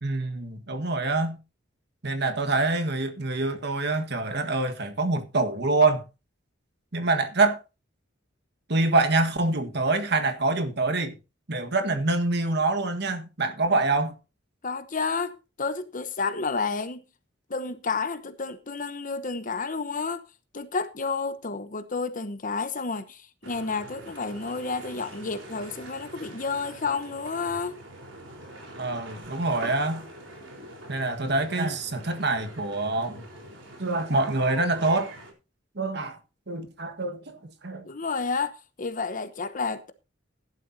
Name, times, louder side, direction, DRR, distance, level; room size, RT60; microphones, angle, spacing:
voice 1, 0.0-1.4 2.0-6.0 6.9-7.6 8.7-11.1 11.5-14.1 28.8-30.0 30.9-33.3 33.8-35.1 35.7-36.2 36.5-37.9, right 3 dB, 60° right, 1.6 m, -25 dB
voice 2, 14.6-17.0 17.5-20.2 20.5-27.8 37.8-39.9, left 4 dB, 45° left, 1.0 m, -30 dB
sound 1, 23.4-35.3, right 1 dB, 85° right, 4.2 m, -44 dB
16.0 x 11.0 x 2.8 m
head